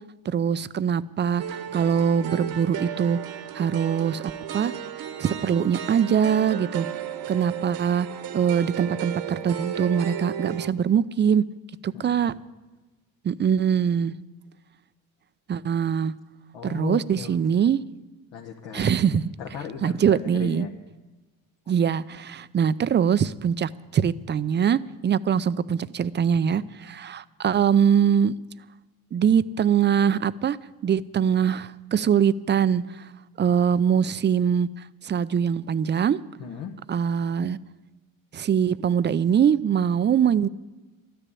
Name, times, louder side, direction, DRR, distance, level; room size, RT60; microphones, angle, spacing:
voice 1, 0.3-3.2 3.5-4.7 5.2-6.9 7.3-11.4 11.8-12.3 13.2-14.1 15.5-16.1 16.6-17.8 18.7-19.3 19.8-20.7 21.7-28.3 29.1-30.6 30.8-33.0 33.4-34.7 35.0-36.2 36.9-37.6 38.3-40.5, right 8 dB, 25° right, 16 dB, 0.4 m, -23 dB
sound 1, 1.4-10.7, right 10 dB, 55° right, 1.2 m, -34 dB
voice 2, 11.9-12.4 16.5-17.3 18.3-18.9 19.4-20.7 26.5-26.7 36.4-36.7, left 7 dB, 75° left, 0 dB, 1.4 m, -37 dB
13.0 x 10.0 x 8.5 m, 1.2 s
supercardioid pair, 85°, 43 cm